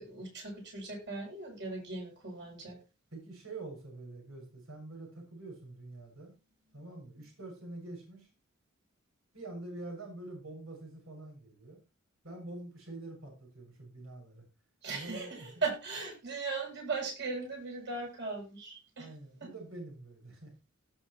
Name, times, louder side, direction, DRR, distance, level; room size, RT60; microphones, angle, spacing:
voice 1, 0.0-2.8 14.8-19.1 19.4-19.5, right 4 dB, 60° right, 0 dB, 7.3 m, -38 dB
voice 2, 3.1-6.3 6.7-8.3 9.3-11.8 12.2-14.4 14.9-15.5 19.0-20.5, right 2 dB, 80° right, 1 dB, 6.7 m, -46 dB
18.0 x 6.7 x 3.1 m, 0.30 s
head